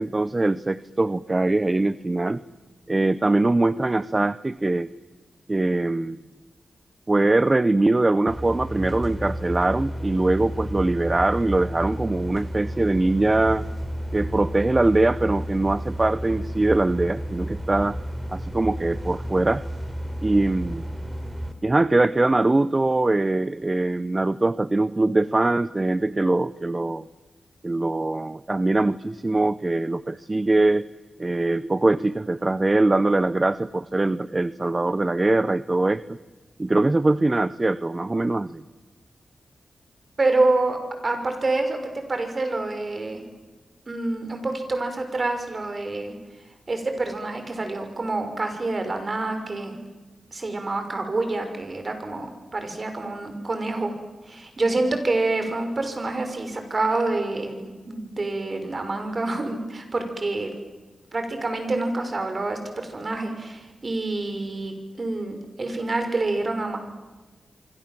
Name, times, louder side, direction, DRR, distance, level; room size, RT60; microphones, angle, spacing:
voice 1, 0.0-2.4 2.9-4.9 5.5-6.2 7.1-13.6 14.1-18.0 18.3-19.6 20.2-20.9 21.6-27.0 27.6-30.8 31.2-36.2 36.6-38.6, right 2 dB, 30° right, 16 dB, 0.7 m, -22 dB
sound 1, 8.3-21.5, equal, 10° right, 3.5 m, -32 dB
voice 2, 40.2-40.8 41.0-43.2 43.9-46.1 46.7-49.8 50.3-54.0 54.3-60.5 61.1-66.8, right 2 dB, 45° right, 6 dB, 6.1 m, -27 dB
26.0 x 25.5 x 7.7 m, 1.2 s
cardioid pair, 65°, 0 cm